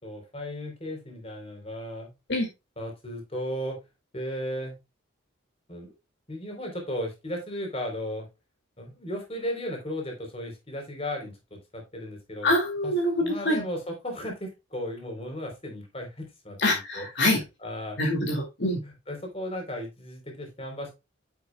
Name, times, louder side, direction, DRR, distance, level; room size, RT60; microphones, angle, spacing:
voice 1, 0.0-2.1 2.8-3.8 4.1-4.7 5.7-5.9 6.3-8.3 8.8-12.5 12.8-12.9 13.2-18.0 18.8-20.9, equal, 30° left, 2 dB, 3.6 m, -35 dB
voice 2, 12.4-13.6 16.6-17.4 18.0-18.8, left 1 dB, 55° left, 0 dB, 2.4 m, -25 dB
9.3 x 7.6 x 2.3 m, 0.24 s
head